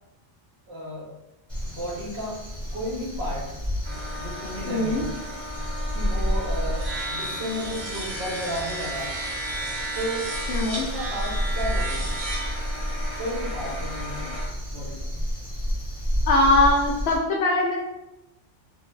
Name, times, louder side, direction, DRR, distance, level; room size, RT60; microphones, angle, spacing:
voice 1, 0.7-1.2 1.7-2.4 2.7-3.6 4.1-5.1 5.9-9.2 9.9-10.3 10.6-12.1 13.2-14.4 14.7-15.2, equal, 60° right, -3 dB, 0.9 m, -33 dB
Crow, 1.5-17.2, equal, ahead, 1.0 m, -31 dB
sound 1, 3.8-14.5, right 1 dB, 30° right, 0.5 m, -34 dB
voice 2, 4.7-5.0 10.5-10.9 16.3-17.8, left 2 dB, 65° left, -1 dB, 0.8 m, -21 dB
2.5 x 2.0 x 3.1 m, 0.96 s
omnidirectional pair, 1.2 m